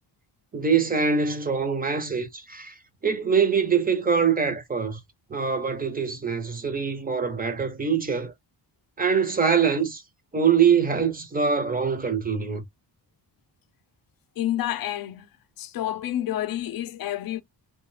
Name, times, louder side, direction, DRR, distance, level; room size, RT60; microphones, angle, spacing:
voice 1, 0.5-2.8 3.0-5.0 5.3-8.3 9.0-10.0 10.3-12.6, right 6 dB, 20° right, 0.5 m, -23 dB
voice 2, 14.4-15.3 15.6-17.4, left 12 dB, 55° left, 0.5 m, -29 dB
2.3 x 2.2 x 3.2 m
wide cardioid pair, 150°, 41 cm